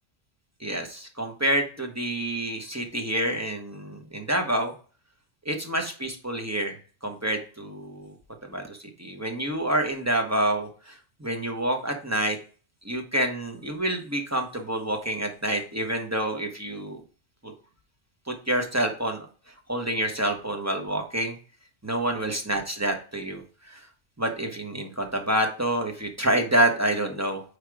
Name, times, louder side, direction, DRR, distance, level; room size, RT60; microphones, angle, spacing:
voice 1, 0.6-4.7 5.4-6.8 7.0-8.1 8.4-12.4 12.8-17.0 17.4-17.5 18.3-19.3 19.7-21.4 21.8-23.8 24.2-27.4, right 1 dB, 15° right, 3 dB, 0.9 m, -28 dB
5.1 x 4.8 x 4.7 m, 0.38 s
omnidirectional pair, 1.3 m